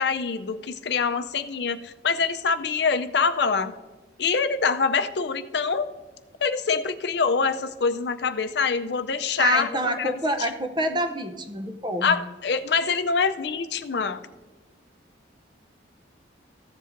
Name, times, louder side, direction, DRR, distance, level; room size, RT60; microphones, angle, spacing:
voice 1, 0.0-3.7 4.2-5.9 6.4-9.7 10.0-10.1 12.0-14.2, left 5 dB, 60° left, 10 dB, 0.5 m, -25 dB
voice 2, 9.4-12.2, right 1 dB, 25° right, 6 dB, 0.6 m, -27 dB
14.5 x 7.6 x 2.6 m, 1.3 s
head